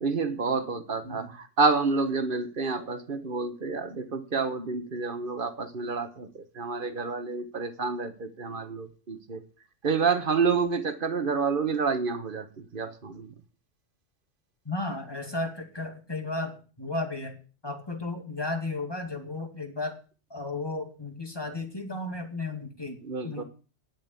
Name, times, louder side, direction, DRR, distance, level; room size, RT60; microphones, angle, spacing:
voice 1, 0.0-9.4 9.8-13.3 23.0-23.4, right 4 dB, 45° right, 1.3 m, -29 dB
voice 2, 14.6-17.4 17.6-20.0 20.3-23.4, left 2 dB, 20° left, 2.3 m, -34 dB
9.9 x 7.3 x 8.2 m
omnidirectional pair, 1.3 m